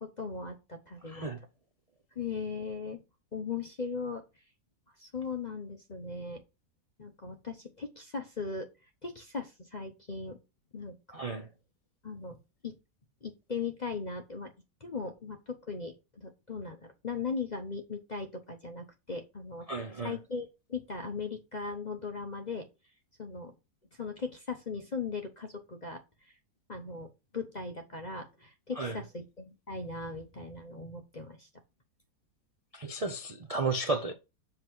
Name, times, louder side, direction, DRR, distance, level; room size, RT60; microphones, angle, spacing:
voice 1, 0.0-1.3 2.2-3.0 3.3-4.2 5.0-6.4 7.0-8.7 9.0-10.4 10.7-11.3 12.0-12.4 12.6-12.7 13.2-14.5 14.8-19.6 20.0-22.7 23.2-23.5 24.0-26.3 26.7-31.5, left 4 dB, 35° left, 0.7 m, -38 dB
voice 2, 1.0-1.4 11.1-11.5 19.7-20.2 28.8-29.0 32.7-34.1, right 3 dB, 45° right, 0.4 m, -33 dB
7.4 x 3.7 x 6.0 m
omnidirectional pair, 1.8 m